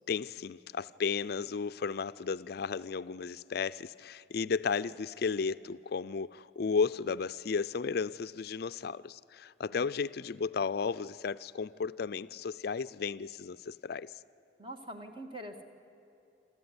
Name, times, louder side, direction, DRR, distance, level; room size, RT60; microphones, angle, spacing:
voice 1, 0.1-14.1, left 5 dB, 60° left, 0.4 m, -34 dB
voice 2, 14.6-15.6, right 1 dB, 30° right, 1.9 m, -44 dB
27.5 x 14.0 x 9.7 m
head